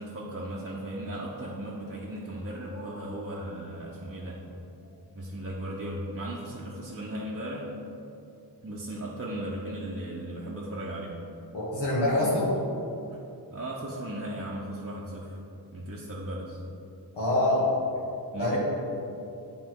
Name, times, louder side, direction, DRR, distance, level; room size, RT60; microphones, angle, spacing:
voice 1, 0.0-4.4 5.2-7.7 8.6-11.1 12.1-12.3 13.1-13.2 13.5-15.4 15.7-16.6 18.3-18.6, right 1 dB, 35° right, -5 dB, 0.8 m, -36 dB
voice 2, 2.7-3.1 11.5-12.5 17.1-17.7 18.4-18.6, left 1 dB, 85° left, -8 dB, 1.4 m, -26 dB
9.6 x 3.4 x 4.6 m, 2.6 s
wide cardioid pair, 105°, 40 cm